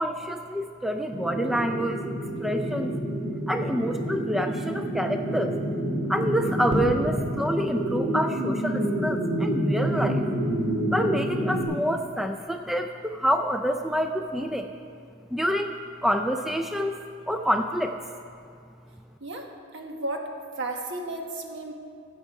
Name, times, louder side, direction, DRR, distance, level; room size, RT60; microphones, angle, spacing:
voice 1, 0.0-2.0 2.4-2.9 3.5-5.5 6.1-10.2 10.9-14.7 15.3-15.7 16.0-17.0 17.3-18.0, equal, ahead, 5 dB, 0.3 m, -27 dB
sound 1, 1.1-11.6, right 1 dB, 30° right, 2.8 m, -28 dB
voice 2, 19.2-20.3 20.6-21.7, right 2 dB, 60° right, 2 dB, 1.3 m, -34 dB
14.5 x 7.4 x 4.8 m, 2.3 s
head